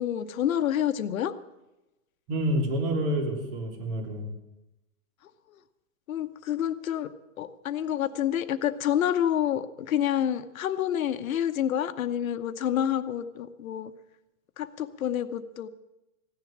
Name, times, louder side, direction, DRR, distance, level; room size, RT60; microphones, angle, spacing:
voice 1, 0.0-1.3 6.1-7.1 7.4-13.9 14.6-15.7, left 10 dB, 75° left, 12 dB, 1.0 m, -28 dB
voice 2, 2.3-4.3, right 1 dB, 40° right, 2 dB, 3.1 m, -28 dB
16.0 x 10.5 x 7.3 m, 0.97 s
supercardioid pair, 170°, 42 cm